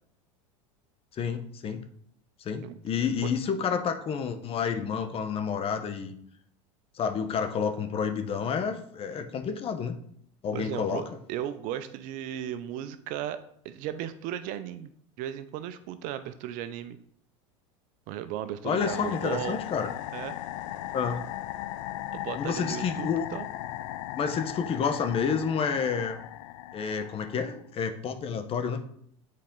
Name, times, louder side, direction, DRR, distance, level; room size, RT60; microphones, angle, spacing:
voice 1, 1.1-1.8 2.4-6.2 6.9-10.0 10.4-11.0 18.6-19.9 20.9-21.2 22.3-23.2 24.1-26.2 26.7-28.9, left 6 dB, 35° left, 8 dB, 0.9 m, -29 dB
voice 2, 10.5-14.9 15.2-17.0 18.1-19.6 20.1-20.4 22.1-23.5, right 11 dB, 55° right, 12 dB, 0.6 m, -36 dB
sound 1, 18.8-27.6, left 14 dB, 75° left, 0.4 m, -37 dB
7.5 x 4.3 x 3.8 m, 0.66 s
hypercardioid pair, 95°, 17 cm